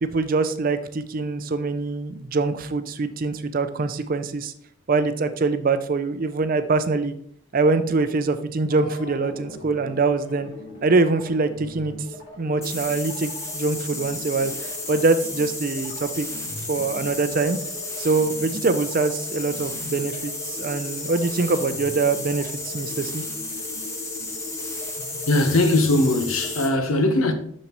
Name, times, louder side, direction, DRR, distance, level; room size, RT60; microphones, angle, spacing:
voice 1, 0.0-4.5 4.9-7.2 7.5-10.5 10.8-12.0 12.4-16.3 16.7-17.6 18.0-23.2, right 3 dB, 40° right, 0.5 m, -24 dB
sound 1, 8.7-26.7, left 2 dB, 50° left, 2.8 m, -40 dB
sound 2, 12.6-26.8, left 2 dB, 15° left, 0.9 m, -33 dB
voice 2, 25.0-27.3, left 2 dB, 80° left, 0.9 m, -20 dB
6.9 x 6.5 x 3.0 m
head